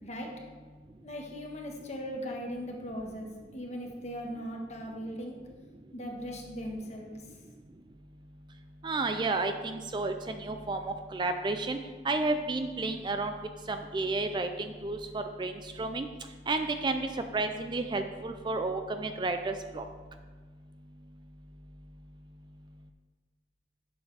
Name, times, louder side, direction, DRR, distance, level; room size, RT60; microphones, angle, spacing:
voice 1, 1.0-5.4 5.9-7.2, equal, 40° left, 1 dB, 1.3 m, -39 dB
voice 2, 8.8-11.8 12.0-13.3 13.7-16.1 16.5-19.8, right 3 dB, 25° right, 7 dB, 0.4 m, -31 dB
11.0 x 7.0 x 3.3 m, 1.4 s
head